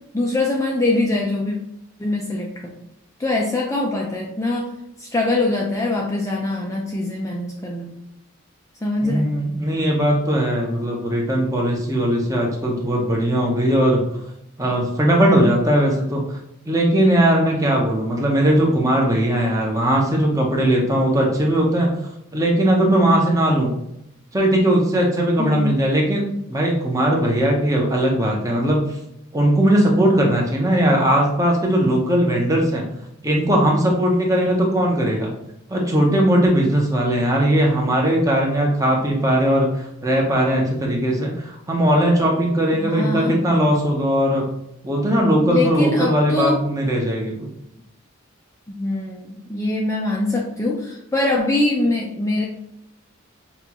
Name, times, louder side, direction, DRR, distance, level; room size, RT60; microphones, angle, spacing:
voice 1, 0.1-1.6 2.0-2.8 3.2-4.7 5.0-7.9 8.8-9.3 25.4-25.7 42.8-43.4 45.5-46.6 48.7-52.5, left 2 dB, 15° left, -2 dB, 0.4 m, -23 dB
voice 2, 9.0-14.1 14.6-16.4 16.7-21.9 22.3-23.8 24.3-28.8 29.3-32.8 33.2-35.3 35.7-44.4 44.8-47.3, right 1 dB, 15° right, -1 dB, 0.8 m, -19 dB
5.8 x 2.4 x 2.9 m, 0.80 s
head